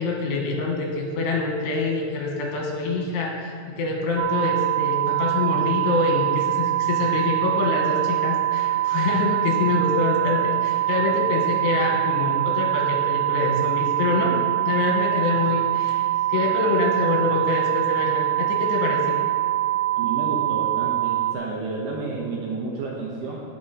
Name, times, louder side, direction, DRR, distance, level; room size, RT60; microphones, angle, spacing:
voice 1, 0.0-14.3 14.7-19.0, left 3 dB, 75° left, 0 dB, 3.6 m, -25 dB
sound 1, 4.2-21.3, right 14 dB, 85° right, 2.2 m, -24 dB
voice 2, 20.0-23.4, right 3 dB, 70° right, -2 dB, 2.2 m, -30 dB
17.0 x 5.8 x 4.1 m, 2.4 s
omnidirectional pair, 4.9 m